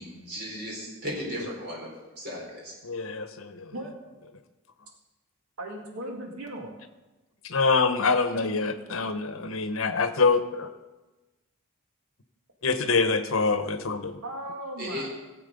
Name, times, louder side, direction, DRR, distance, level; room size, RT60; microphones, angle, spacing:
voice 1, 0.0-1.9 2.2-2.7 14.8-15.1, equal, 45° right, -3 dB, 4.4 m, -35 dB
voice 2, 2.8-3.7 7.4-10.7 12.6-14.2, left 4 dB, 65° left, 10 dB, 1.0 m, -25 dB
voice 3, 5.6-6.8 14.2-15.1, right 1 dB, 70° right, 1 dB, 2.0 m, -37 dB
17.5 x 7.5 x 5.2 m, 1.1 s
head